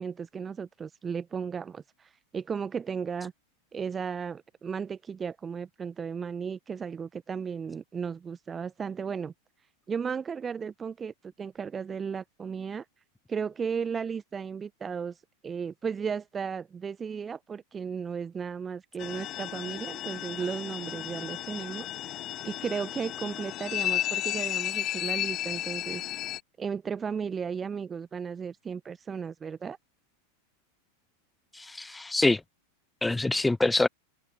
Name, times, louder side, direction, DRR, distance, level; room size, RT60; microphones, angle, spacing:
voice 1, 0.0-3.3 3.7-9.3 9.9-12.8 13.3-15.2 15.4-21.9 22.4-26.0 26.6-29.8, right 6 dB, 20° right, 1.0 m, -35 dB
sound 1, 19.0-26.4, left 13 dB, 35° left, 1.0 m, -33 dB
voice 2, 31.6-32.4 33.0-33.9, left 2 dB, 5° left, 0.5 m, -25 dB
figure-of-eight pair, 90°, 0 cm